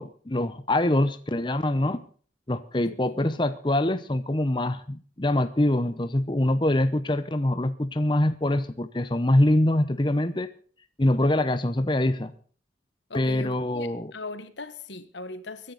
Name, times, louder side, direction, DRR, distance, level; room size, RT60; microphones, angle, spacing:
voice 1, 0.0-2.0 2.5-10.5 11.0-12.3 13.1-14.1, left 1 dB, 25° left, 0.8 m, -24 dB
voice 2, 13.1-15.7, left 3 dB, 75° left, 1.5 m, -39 dB
24.5 x 10.5 x 4.1 m
head